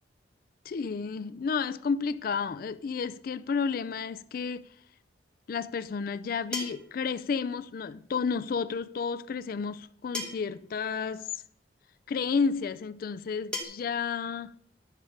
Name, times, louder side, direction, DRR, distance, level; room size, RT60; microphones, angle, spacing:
voice 1, 0.7-4.7 5.5-11.4 12.1-14.5, left 5 dB, 50° left, 0.3 m, -31 dB
sound 1, 4.8-4.9 6.5-7.0 8.5-8.6 10.1-10.6 11.8-11.9 13.5-13.6, left 2 dB, 5° left, 1.3 m, -36 dB
10.5 x 6.6 x 4.9 m
head